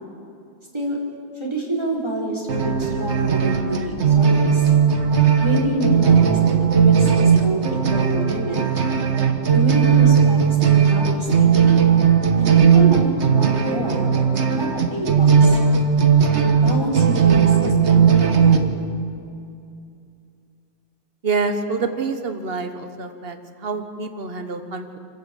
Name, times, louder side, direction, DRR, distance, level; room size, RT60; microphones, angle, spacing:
voice 1, 1.3-4.7 5.4-8.7 9.5-11.7 12.3-15.6 16.3-18.7, right 1 dB, 25° right, -3 dB, 4.5 m, -27 dB
sound 1, 2.5-18.6, right 7 dB, 75° right, 1.6 m, -17 dB
voice 2, 21.2-25.0, right 4 dB, 60° right, 7 dB, 1.5 m, -27 dB
26.5 x 12.5 x 8.4 m, 2.4 s
omnidirectional pair, 1.2 m